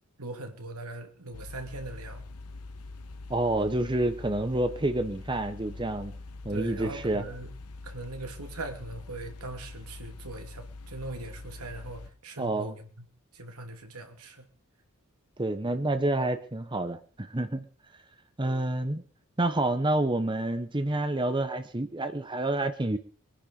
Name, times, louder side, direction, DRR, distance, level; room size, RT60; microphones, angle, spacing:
voice 1, 0.2-2.2 6.5-7.5 7.8-13.1 13.3-14.4, right 2 dB, 85° right, 5 dB, 2.7 m, -40 dB
sound 1, 1.3-12.1, left 2 dB, 90° left, 1.3 m, -44 dB
voice 2, 3.3-6.1 6.4-7.2 12.4-12.7 15.4-17.6 18.4-19.0 19.4-23.0, right 2 dB, 20° right, 9 dB, 1.0 m, -28 dB
23.0 x 10.5 x 5.5 m, 0.42 s
head